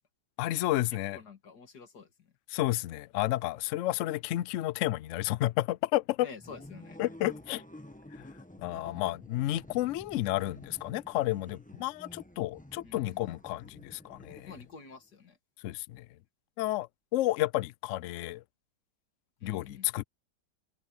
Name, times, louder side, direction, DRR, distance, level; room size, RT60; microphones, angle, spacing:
voice 1, 0.4-1.2 2.5-6.3 7.0-7.6 8.6-14.6 15.6-16.0 16.6-18.4 19.4-20.0, left 16 dB, 85° left, 0.6 m, -31 dB
voice 2, 0.9-2.3 6.2-7.0 12.8-13.2 14.5-15.4 19.4-19.9, left 5 dB, 65° left, 2.5 m, -49 dB
sound 1, 6.4-14.9, left 1 dB, 5° left, 1.0 m, -50 dB
omnidirectional pair, 1.8 m